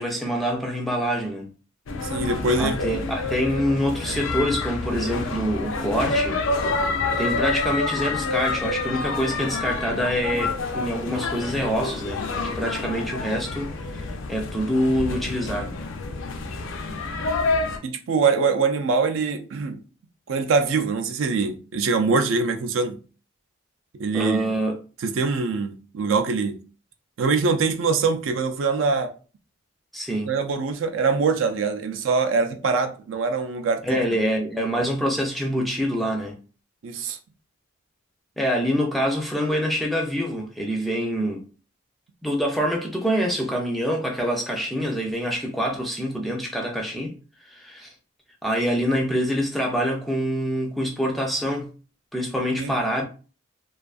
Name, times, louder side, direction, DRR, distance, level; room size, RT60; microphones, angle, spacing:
voice 1, 0.0-1.5 2.6-6.4 7.2-15.7 24.1-24.8 29.9-30.3 33.8-36.4 38.4-41.4 42.2-47.2 47.5-47.9 48.4-51.7 52.1-53.0, equal, ahead, 0.3 m, -25 dB
sound 1, 1.9-17.8, left 3 dB, 70° left, 0.4 m, -28 dB
voice 2, 2.0-2.8 17.8-19.8 20.3-23.0 24.0-24.5 25.0-26.6 27.2-29.1 30.3-34.0 36.8-37.2 52.6-52.7, right 4 dB, 70° right, 0.4 m, -23 dB
2.5 x 2.3 x 2.3 m
head